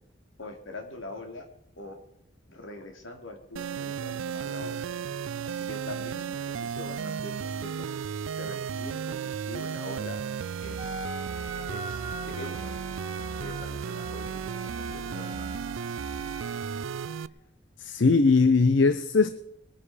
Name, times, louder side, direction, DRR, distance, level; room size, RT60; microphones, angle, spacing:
voice 1, 0.4-1.5 1.8-2.0 2.5-4.9 5.4-7.9 8.4-9.2 9.5-10.2 10.6-11.1 11.5-12.7 13.4-15.5, left 2 dB, 85° left, 2.8 m, -43 dB
sound 1, 3.6-17.3, right 7 dB, 90° right, 0.4 m, -34 dB
Wind instrument woodwind instrument, 10.8-17.2, right 2 dB, 20° right, 1.6 m, -41 dB
voice 2, 17.8-19.3, left 4 dB, 70° left, 0.7 m, -20 dB
21.0 x 9.9 x 5.0 m
head